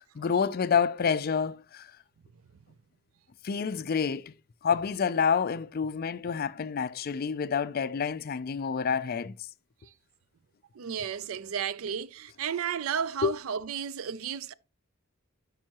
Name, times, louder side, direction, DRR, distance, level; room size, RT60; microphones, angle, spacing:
voice 1, 0.2-1.9 3.4-4.3 4.6-9.3 13.2-13.3, left 6 dB, 45° left, 0.4 m, -28 dB
voice 2, 10.7-14.5, right 7 dB, 75° right, 0.4 m, -33 dB
12.0 x 5.5 x 2.9 m
head